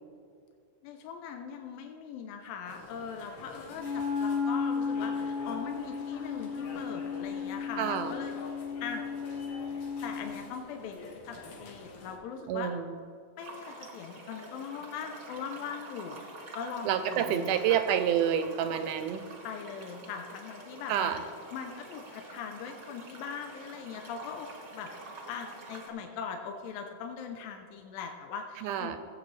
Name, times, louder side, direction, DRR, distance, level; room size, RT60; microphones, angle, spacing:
voice 1, 0.8-9.0 10.0-12.7 13.4-16.2 16.5-17.8 19.4-21.1 21.5-24.9 25.3-29.0, left 6 dB, 90° left, 4 dB, 2.5 m, -41 dB
sound 1, 2.7-12.2, left 2 dB, 60° left, 1.8 m, -48 dB
Wind instrument woodwind instrument, 3.7-10.4, left 5 dB, 10° left, 1.2 m, -34 dB
voice 2, 7.8-8.1 12.5-12.9 16.9-19.3 20.9-21.2 28.6-29.0, right 9 dB, 80° right, 9 dB, 1.9 m, -28 dB
sound 2, 13.4-25.9, right 2 dB, 40° right, 1.3 m, -47 dB
17.5 x 8.1 x 3.2 m, 2.3 s
omnidirectional pair, 4.0 m